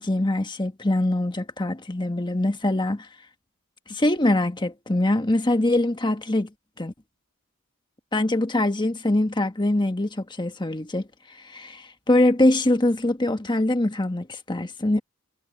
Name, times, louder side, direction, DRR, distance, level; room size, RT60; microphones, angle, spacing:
voice 1, 0.0-3.1 3.9-6.5 6.8-6.9 8.1-11.1 11.4-15.0, left 1 dB, 20° left, 1.3 m, -23 dB
head